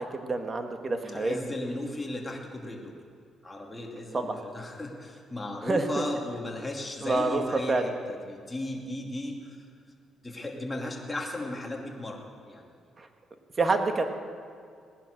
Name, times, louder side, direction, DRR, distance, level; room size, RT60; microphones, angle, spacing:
voice 1, 0.0-1.4 4.1-4.4 5.6-6.0 7.0-7.9 13.0-13.1 13.6-14.0, right 3 dB, 35° right, 6 dB, 1.6 m, -27 dB
voice 2, 1.0-3.0 3.4-9.5 10.2-12.7, left 1 dB, 15° left, 0 dB, 2.7 m, -36 dB
18.5 x 10.5 x 6.5 m, 2.2 s
cardioid pair, 90°, 0 cm